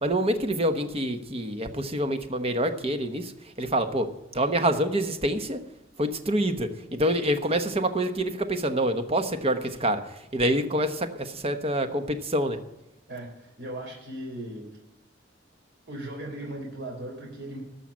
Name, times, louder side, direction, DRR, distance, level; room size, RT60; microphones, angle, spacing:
voice 1, 0.0-5.6 6.0-12.6, right 1 dB, 30° right, 8 dB, 1.1 m, -26 dB
voice 2, 13.1-14.7 15.9-17.6, right 1 dB, 65° right, 0 dB, 3.7 m, -37 dB
13.5 x 5.8 x 8.5 m, 0.93 s
head